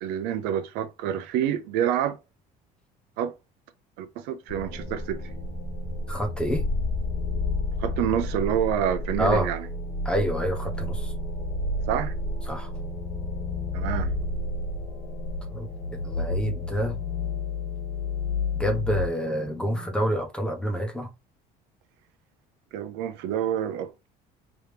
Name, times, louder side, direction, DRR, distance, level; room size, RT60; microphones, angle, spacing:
voice 1, 0.0-2.2 3.2-3.3 4.0-5.2 7.8-9.6 11.9-12.2 13.7-14.1 22.7-24.1, right 10 dB, 90° right, 0.7 m, -27 dB
sound 1, 4.5-20.1, left 2 dB, 50° left, 2.0 m, -31 dB
voice 2, 6.1-6.6 9.2-9.5 10.0-11.1 12.5-12.7 15.5-17.0 18.5-21.1, equal, 5° left, 1.1 m, -28 dB
3.6 x 3.1 x 3.3 m
cardioid pair, 130°, 17 cm